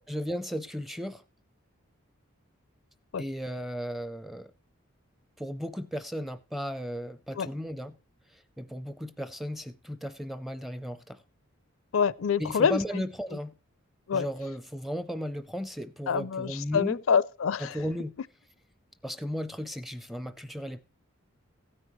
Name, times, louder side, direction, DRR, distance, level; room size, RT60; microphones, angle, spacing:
voice 1, 0.1-1.2 3.2-4.5 5.4-8.0 8.3-11.2 12.4-13.6 14.1-17.0 17.6-18.2 19.0-20.8, equal, ahead, 0.5 m, -35 dB
voice 2, 11.9-13.0 14.1-14.3 16.1-17.7, left 6 dB, 80° left, 0.5 m, -26 dB
16.0 x 9.6 x 3.1 m
head